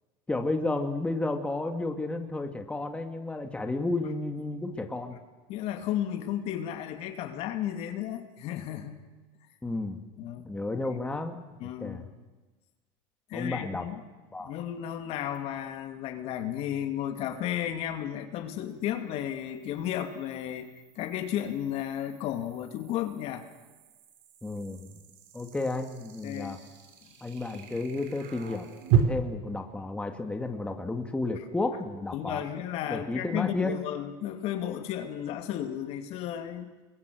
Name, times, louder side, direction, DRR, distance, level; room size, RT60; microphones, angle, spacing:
voice 1, 0.3-5.2 9.6-10.0 10.4-12.1 13.3-13.9 14.3-14.5 24.4-24.9 25.3-26.6 27.2-28.7 28.9-32.4 32.9-33.9, left 2 dB, 10° left, 4 dB, 2.2 m, -32 dB
voice 2, 5.5-9.0 10.2-10.4 11.6-12.1 13.3-14.0 14.4-23.5 26.2-26.6 32.1-36.7, left 11 dB, 55° left, 6 dB, 2.5 m, -33 dB
sound 1, 15.3-15.4 18.9-29.0, right 9 dB, 70° right, 4.3 m, -36 dB
29.5 x 22.0 x 6.4 m, 1.2 s
supercardioid pair, 115°, 12 cm